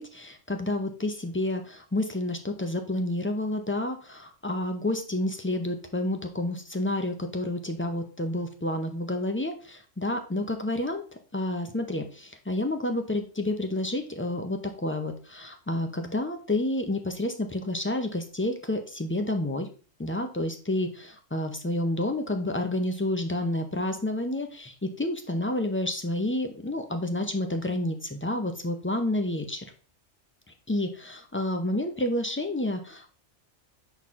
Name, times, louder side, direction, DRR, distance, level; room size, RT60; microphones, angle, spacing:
voice 1, 0.0-11.0 11.3-19.7 20.0-29.6 30.7-33.2, left 1 dB, 15° left, 5 dB, 0.4 m, -29 dB
6.1 x 4.3 x 3.6 m, 0.37 s
omnidirectional pair, 1.2 m